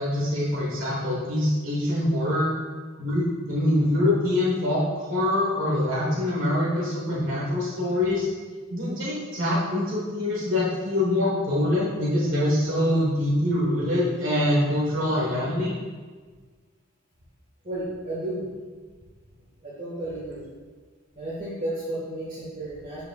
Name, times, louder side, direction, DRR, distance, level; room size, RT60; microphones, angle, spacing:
voice 1, 0.0-2.5 3.0-8.3 8.7-15.7, left 1 dB, 85° right, -5 dB, 1.6 m, -24 dB
voice 2, 17.6-18.5 19.6-20.4 21.2-23.0, right 1 dB, 40° right, -10 dB, 1.9 m, -32 dB
11.0 x 5.1 x 2.5 m, 1.4 s
head